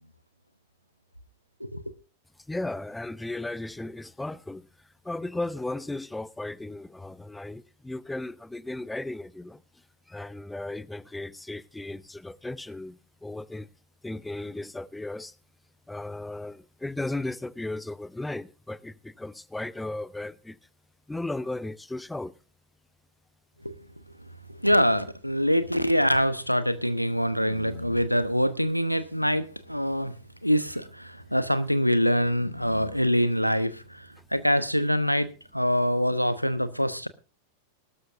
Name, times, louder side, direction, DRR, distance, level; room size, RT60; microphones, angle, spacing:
voice 1, 2.5-4.7 5.0-9.6 10.1-13.7 14.0-15.3 15.9-20.6 21.1-22.3, left 2 dB, 5° left, 0.6 m, -35 dB
voice 2, 24.5-30.2 30.4-37.1, equal, 90° left, 1.0 m, -25 dB
20.0 x 12.5 x 2.5 m
figure-of-eight pair, 90°, 0 cm